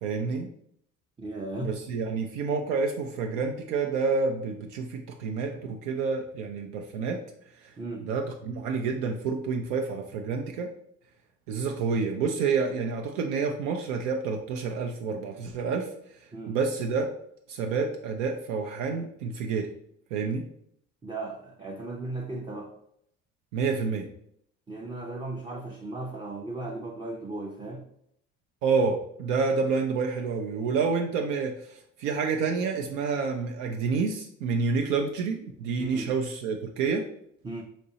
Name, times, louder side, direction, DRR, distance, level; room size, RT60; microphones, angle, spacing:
voice 1, 0.0-0.5 1.6-7.2 7.6-7.7 8.0-10.7 11.5-15.9 16.5-17.1 17.5-19.7 20.1-20.5 23.5-24.1 28.6-37.1, right 5 dB, 75° right, 2 dB, 0.5 m, -28 dB
voice 2, 1.2-1.8 7.8-8.1 16.3-16.6 21.0-22.7 24.7-27.8 35.8-36.1 37.4-37.6, right 2 dB, 15° right, 0 dB, 0.5 m, -36 dB
4.1 x 2.5 x 2.7 m, 0.71 s
hypercardioid pair, 55°, 38 cm